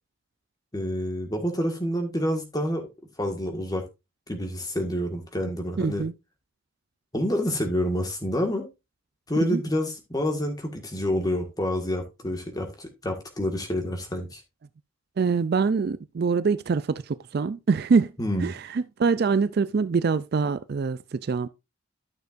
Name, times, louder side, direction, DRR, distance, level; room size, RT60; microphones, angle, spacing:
voice 1, 0.7-2.9 3.2-3.8 4.3-6.1 7.1-8.7 9.3-14.4 18.2-18.5, equal, 15° left, 1.7 m, -28 dB
voice 2, 5.8-6.1 9.4-9.6 15.2-18.1 18.4-21.5, right 5 dB, 45° right, 0.3 m, -24 dB
12.0 x 6.6 x 2.5 m
head